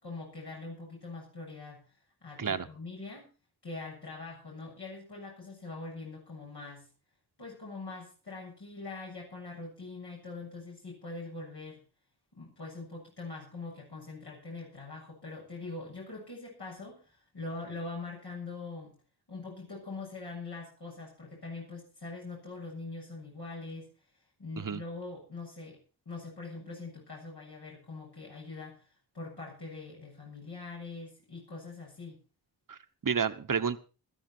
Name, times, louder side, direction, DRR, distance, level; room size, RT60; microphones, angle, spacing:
voice 1, 0.0-3.3 3.6-6.9 7.4-11.8 12.3-19.0 19.3-23.9 24.4-25.8 26.1-32.2, left 3 dB, 70° left, -3 dB, 7.4 m, -43 dB
voice 2, 32.7-33.8, right 6 dB, 50° right, 9 dB, 1.2 m, -31 dB
16.5 x 13.0 x 4.5 m, 0.35 s
cardioid pair, 40°, 41 cm